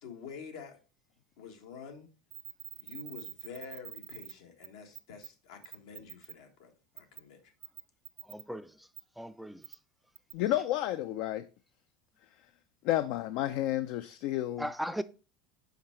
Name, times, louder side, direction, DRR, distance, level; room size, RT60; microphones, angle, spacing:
voice 1, 0.0-0.8 1.4-2.1 2.8-7.5, left 6 dB, 80° left, 1.4 m, -48 dB
sound 1, 2.3-4.3 4.6-4.7 4.9-5.3 5.6-6.3 7.0-7.2 7.6-8.4 8.9-9.0 9.6-9.8 10.2-10.3, right 15 dB, 60° right, 0.6 m, -45 dB
voice 2, 8.2-8.9 9.2-9.7 14.6-15.0, equal, 5° right, 0.3 m, -37 dB
voice 3, 10.3-11.5 12.8-14.7, left 14 dB, 65° left, 0.4 m, -31 dB
5.7 x 4.7 x 4.3 m
supercardioid pair, 115°, 2 cm